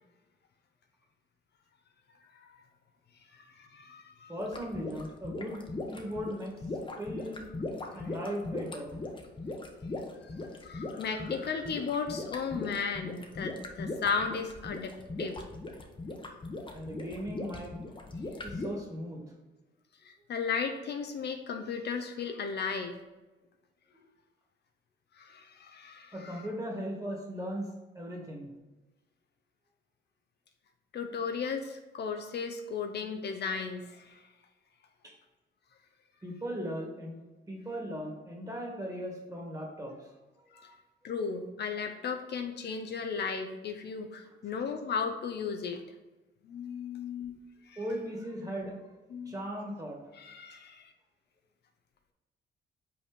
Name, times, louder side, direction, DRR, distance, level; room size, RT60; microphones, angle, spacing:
voice 1, 3.6-4.4 7.8-8.1 10.3-10.4 10.6-15.4 20.0-23.0 25.2-26.4 30.9-34.2 40.5-40.7 41.0-45.8 46.4-47.4 47.7-47.8 49.1-49.3 50.2-50.9, left 5 dB, 60° left, 5 dB, 0.7 m, -35 dB
voice 2, 4.3-5.6 5.9-7.4 7.9-9.0 16.7-17.7 18.4-19.2 26.1-27.7 27.9-28.5 35.0-35.1 36.2-37.1 37.5-40.1 40.6-40.8 44.2-44.3 47.8-48.8 49.3-50.0, equal, 15° right, -1 dB, 1.9 m, -38 dB
sound 1, 4.4-18.7, left 2 dB, 25° left, 1.0 m, -39 dB
5.6 x 4.2 x 5.1 m, 1.1 s
cardioid pair, 90°, 20 cm